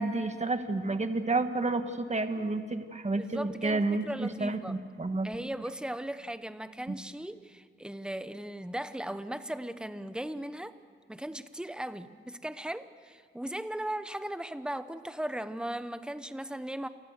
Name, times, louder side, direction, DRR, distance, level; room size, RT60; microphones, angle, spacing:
voice 1, 0.0-5.3 6.9-7.0, right 3 dB, 35° right, 8 dB, 1.5 m, -30 dB
voice 2, 3.2-4.8 5.2-10.7 11.1-16.9, right 1 dB, 5° right, 11 dB, 1.0 m, -37 dB
29.0 x 20.0 x 6.6 m, 2.1 s
wide cardioid pair, 95°, 21 cm